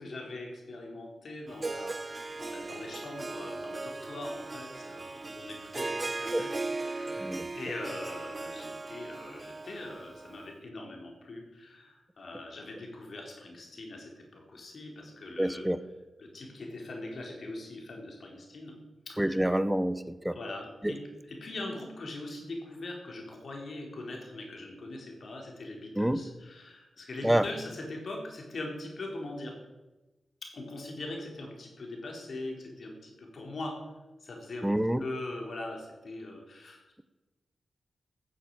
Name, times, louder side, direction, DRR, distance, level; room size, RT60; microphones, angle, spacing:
voice 1, 0.0-15.7 16.2-18.8 19.1-19.5 20.3-21.0 21.3-29.6 30.4-33.9 34.2-34.7 35.0-37.0, left 2 dB, 65° left, 1 dB, 4.3 m, -42 dB
Harp, 1.5-10.5, right 3 dB, 40° right, 0.4 m, -38 dB
voice 2, 7.1-7.5 15.4-15.8 19.2-20.4 20.8-20.9 26.0-26.2 27.2-27.4 34.6-35.0, right 1 dB, 10° right, 13 dB, 1.2 m, -27 dB
15.0 x 7.4 x 8.9 m, 1.1 s
cardioid pair, 45°, 0 cm